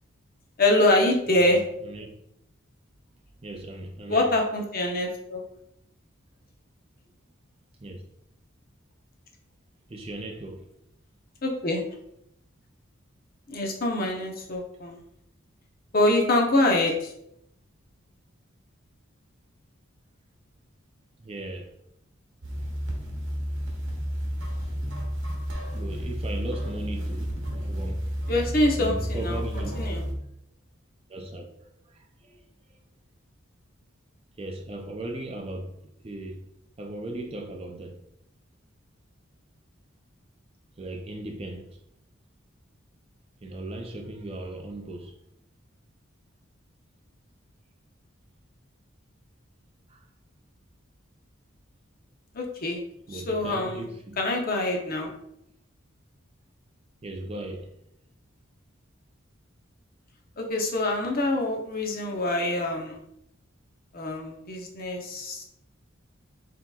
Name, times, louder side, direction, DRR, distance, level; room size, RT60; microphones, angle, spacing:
voice 1, 0.6-1.6 4.1-5.4 11.4-11.8 13.5-15.0 15.9-17.1 28.3-30.0 52.3-52.8 53.1-53.9 54.2-55.1 60.4-63.0 63.9-65.4, left 1 dB, 45° left, 0.7 m, -25 dB
voice 2, 3.4-4.3 7.8-8.0 9.9-10.7 21.2-21.7 25.7-28.1 28.8-29.9 31.1-32.4 34.4-35.7 36.0-36.4 36.8-38.0 40.8-41.8 43.4-45.2 49.9-50.1 53.1-54.2 57.0-57.7, right 1 dB, 30° right, 0.4 m, -37 dB
sound 1, 22.4-30.1, equal, 65° right, 0.9 m, -31 dB
5.8 x 2.8 x 2.3 m
head